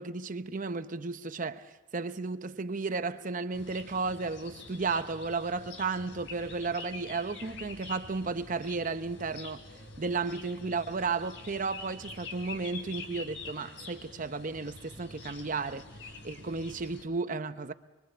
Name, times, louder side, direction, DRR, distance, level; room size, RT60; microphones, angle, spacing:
voice 1, 0.0-9.6 10.0-17.7, right 4 dB, 45° right, 0.8 m, -34 dB
sound 1, 3.5-17.0, left 3 dB, 75° left, 3.2 m, -46 dB
25.0 x 22.5 x 6.8 m
head